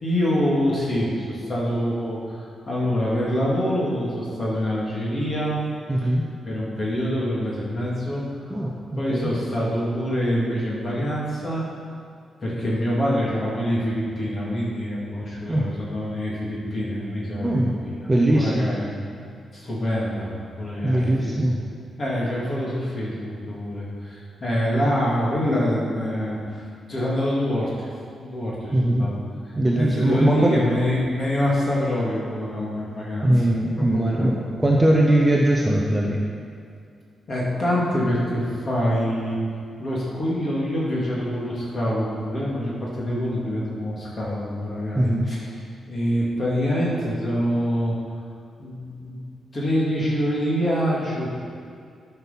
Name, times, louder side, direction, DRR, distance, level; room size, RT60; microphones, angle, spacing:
voice 1, 0.0-5.6 6.0-6.2 6.5-8.2 9.0-11.6 12.4-18.9 19.5-21.4 22.0-26.6 26.9-27.9 28.2-34.4 37.3-39.4 39.8-45.6 45.9-48.0 48.6-49.2 49.5-51.3, equal, 35° left, -5 dB, 2.3 m, -25 dB
voice 2, 5.9-6.3 8.5-9.3 15.5-15.7 17.4-17.8 18.1-18.7 20.8-21.6 28.7-29.1 29.6-30.6 33.2-36.2 44.9-45.3, right 1 dB, 10° right, -2 dB, 0.7 m, -20 dB
11.0 x 6.0 x 5.7 m, 2.3 s
wide cardioid pair, 175°, 0 cm